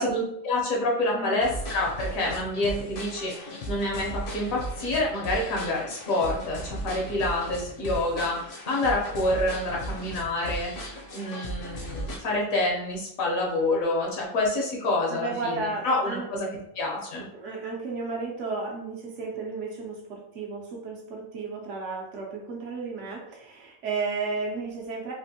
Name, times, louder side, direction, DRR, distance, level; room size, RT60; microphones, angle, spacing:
voice 1, 0.0-16.5 16.7-17.3, left 2 dB, 80° left, -2 dB, 1.3 m, -27 dB
voice 2, 1.1-1.5 15.1-16.3 17.3-25.1, right 4 dB, 65° right, -1 dB, 1.0 m, -33 dB
sound 1, 1.4-12.2, right 1 dB, 55° left, 0.7 m, -36 dB
3.4 x 2.5 x 2.7 m, 0.74 s
omnidirectional pair, 1.4 m